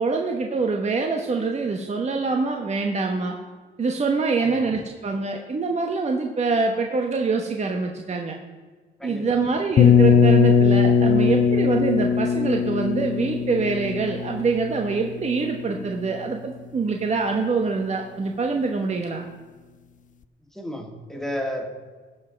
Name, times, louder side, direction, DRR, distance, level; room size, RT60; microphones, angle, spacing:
voice 1, 0.0-3.4 3.8-8.4 9.0-19.3, right 4 dB, 35° right, 3 dB, 1.1 m, -25 dB
voice 2, 9.0-9.4 20.4-21.7, left 1 dB, ahead, 2 dB, 2.1 m, -32 dB
sound 1, 9.8-15.5, left 6 dB, 40° left, 0.5 m, -19 dB
16.0 x 5.7 x 5.1 m, 1.4 s
cardioid pair, 90°, 20 cm